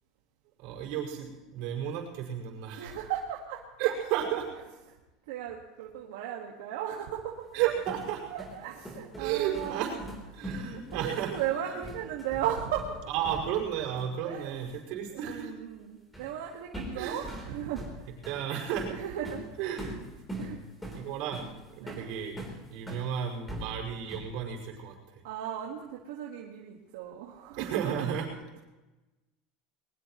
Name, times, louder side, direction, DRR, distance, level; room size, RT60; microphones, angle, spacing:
voice 1, 0.6-3.0 3.8-4.7 7.5-8.3 9.2-10.0 10.3-11.3 11.6-11.8 13.1-15.5 16.9-17.4 18.3-18.9 19.6-20.0 20.4-20.6 20.9-21.5 21.8-22.4 22.7-25.2 27.5-28.3, right 9 dB, 60° right, 0 dB, 5.2 m, -33 dB
voice 2, 2.8-3.6 5.3-7.5 8.3-10.0 10.3-10.4 10.9-13.0 14.2-14.7 15.2-18.2 18.9-19.8 20.4-21.1 21.8-22.1 25.2-28.1, right 10 dB, 85° right, -1 dB, 1.7 m, -36 dB
sound 1, 7.5-13.7 14.0-14.2 16.1-16.4 16.7-23.1 23.5-24.4, equal, 5° left, 3.7 m, -42 dB
21.5 x 20.5 x 3.1 m, 1.1 s
supercardioid pair, 150°, 0 cm